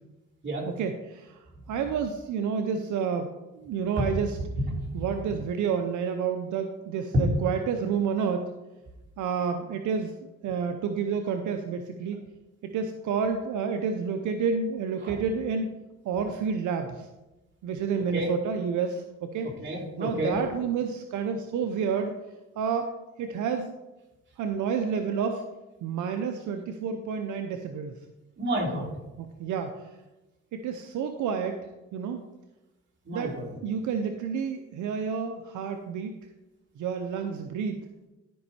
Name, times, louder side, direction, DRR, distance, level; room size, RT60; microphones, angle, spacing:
voice 1, 0.8-4.4 4.9-8.5 9.2-10.1 10.4-12.2 12.6-15.7 16.0-17.1 17.6-19.5 20.0-22.1 22.6-22.9 23.2-23.7 24.4-25.4 25.8-27.9 29.2-29.9 30.5-31.6 31.9-32.2 33.1-36.1 36.8-37.8, right 6 dB, 75° right, 6 dB, 0.7 m, -29 dB
voice 2, 4.6-5.0 15.0-15.1 18.1-18.3 19.4-20.4 28.4-28.9 33.0-33.5, right 1 dB, 40° right, -4 dB, 3.6 m, -31 dB
12.5 x 5.4 x 4.3 m, 1.0 s
cardioid pair, 90°, 30 cm